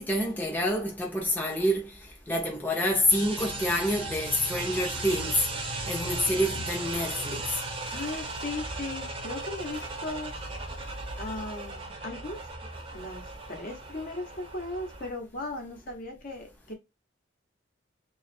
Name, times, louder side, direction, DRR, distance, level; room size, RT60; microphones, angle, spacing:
voice 1, 0.0-1.9 2.3-5.5 5.9-7.4, left 1 dB, 10° left, 0.7 m, -27 dB
sound 1, 2.8-14.2, left 2 dB, 70° left, 1.0 m, -44 dB
sound 2, 3.1-15.1, right 3 dB, 30° right, 0.8 m, -37 dB
voice 2, 7.9-10.3 11.2-12.5 12.9-16.7, left 2 dB, 50° left, 1.0 m, -37 dB
3.1 x 2.4 x 4.2 m
head